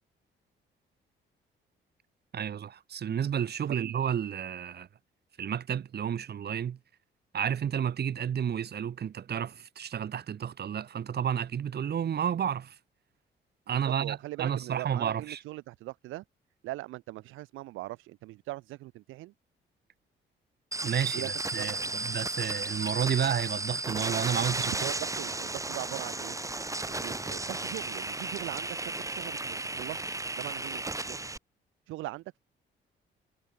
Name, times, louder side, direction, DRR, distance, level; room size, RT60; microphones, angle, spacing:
voice 1, 2.3-4.9 5.4-6.8 7.3-12.8 13.7-15.4 20.8-24.9, right 8 dB, 55° right, 2.6 m, -31 dB
voice 2, 13.7-16.2 16.6-19.3 21.1-21.3 21.6-22.0 24.8-26.4 26.9-30.0 30.4-31.2 31.9-32.4, right 18 dB, 90° right, 0.6 m, -41 dB
sound 1, 20.7-31.4, right 2 dB, 15° right, 2.3 m, -34 dB
cardioid pair, 90°, 20 cm